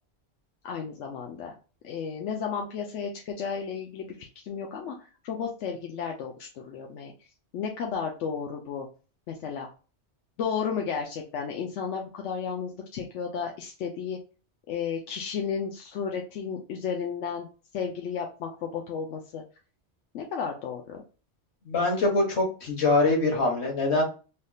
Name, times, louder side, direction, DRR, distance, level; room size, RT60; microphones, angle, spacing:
voice 1, 0.6-1.5 1.8-7.1 7.5-8.9 9.3-9.7 10.4-14.2 14.7-17.5 17.7-19.4 20.1-21.0, left 6 dB, 90° left, 1 dB, 0.9 m, -33 dB
voice 2, 21.6-24.0, left 2 dB, 70° left, 0 dB, 1.6 m, -24 dB
3.4 x 2.7 x 2.3 m, 0.35 s
omnidirectional pair, 1.2 m